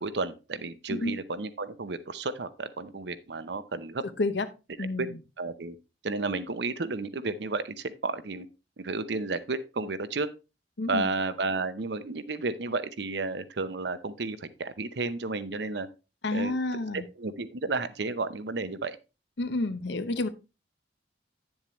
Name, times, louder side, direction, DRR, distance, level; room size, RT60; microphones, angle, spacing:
voice 1, 0.0-4.0 4.8-5.1 5.4-5.7 6.0-8.5 8.8-10.3 10.9-15.9 16.3-16.5 16.9-19.0, right 3 dB, 70° right, 13 dB, 0.8 m, -32 dB
voice 2, 0.9-1.2 4.2-4.5 4.8-5.2 10.8-11.1 16.2-17.1 19.4-20.3, left 2 dB, 75° left, 11 dB, 0.9 m, -29 dB
9.8 x 7.2 x 3.1 m, 0.29 s
head